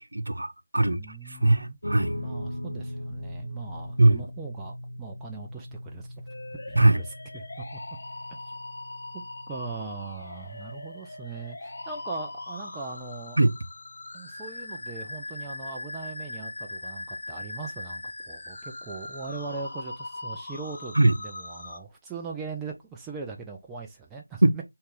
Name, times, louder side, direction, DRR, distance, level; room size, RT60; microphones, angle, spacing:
voice 1, 0.1-1.0 1.3-2.2 4.0-4.2 6.8-7.0 13.4-13.5 20.9-21.1 24.4-24.5, right 2 dB, 75° right, 0.6 m, -20 dB
voice 2, 0.8-1.8 2.1-6.1 6.7-7.8 9.1-13.4 14.1-24.6, right 4 dB, 5° right, 0.4 m, -40 dB
sound 1, 1.8-14.3, equal, 85° left, 0.8 m, -40 dB
sound 2, 6.3-21.8, left 2 dB, 50° left, 0.6 m, -40 dB
3.9 x 2.5 x 3.6 m
figure-of-eight pair, 165°, 0 cm